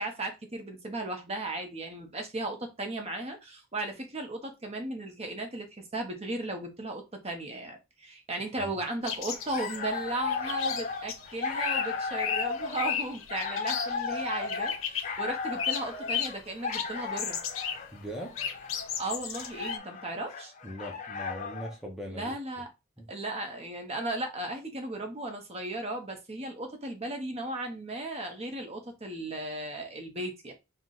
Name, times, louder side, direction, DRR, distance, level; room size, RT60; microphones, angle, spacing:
voice 1, 0.0-17.4 19.0-20.5 22.1-22.7 23.1-30.5, right 2 dB, 30° right, 0.9 m, -36 dB
sound 1, 9.0-15.2 15.6-16.5 16.7-17.9 18.1-19.8, left 8 dB, 85° left, 0.7 m, -35 dB
sound 2, 9.3-21.8, left 5 dB, 40° left, 0.6 m, -35 dB
voice 2, 17.9-18.4 20.6-22.3 23.0-23.1, equal, ahead, 0.6 m, -40 dB
4.5 x 2.2 x 3.8 m
head